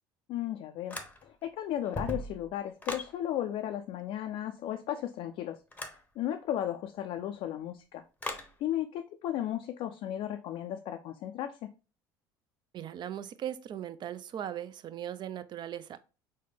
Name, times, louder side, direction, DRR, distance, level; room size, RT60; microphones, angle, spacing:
voice 1, 0.3-5.6 6.2-8.0 8.6-11.7, left 11 dB, 55° left, 0.4 m, -35 dB
sound 1, 0.9-1.5 1.8-3.1 5.7-6.0 8.2-8.5, left 2 dB, 15° left, 0.7 m, -38 dB
voice 2, 12.7-16.0, right 10 dB, 40° right, 0.4 m, -38 dB
4.2 x 2.1 x 3.2 m
hypercardioid pair, 70°, 11 cm